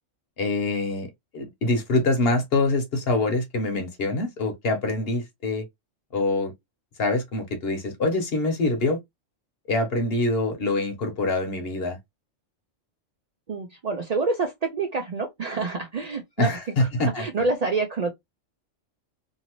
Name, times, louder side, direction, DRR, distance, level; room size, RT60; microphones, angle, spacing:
voice 1, 0.4-5.6 6.1-6.5 7.0-9.0 9.7-12.0 16.4-17.2, left 2 dB, 55° left, 1.0 m, -25 dB
voice 2, 13.5-16.5 16.8-18.1, right 3 dB, 90° right, 0.3 m, -27 dB
2.7 x 2.6 x 2.9 m
omnidirectional pair, 1.3 m